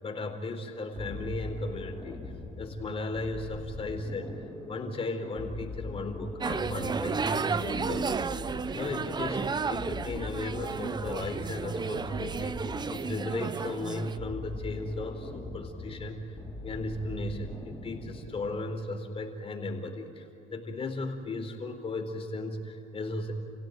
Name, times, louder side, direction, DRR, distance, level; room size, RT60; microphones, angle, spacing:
voice 1, 0.0-2.2 2.6-4.3 4.7-8.2 8.7-16.4 16.6-23.3, left 2 dB, 35° left, 2 dB, 4.1 m, -36 dB
sound 1, 1.0-18.6, left 2 dB, 5° left, 5.0 m, -42 dB
sound 2, 6.4-14.2, right 5 dB, 25° right, 0.6 m, -33 dB
30.0 x 16.5 x 9.3 m, 2.8 s
cardioid pair, 110°, 17 cm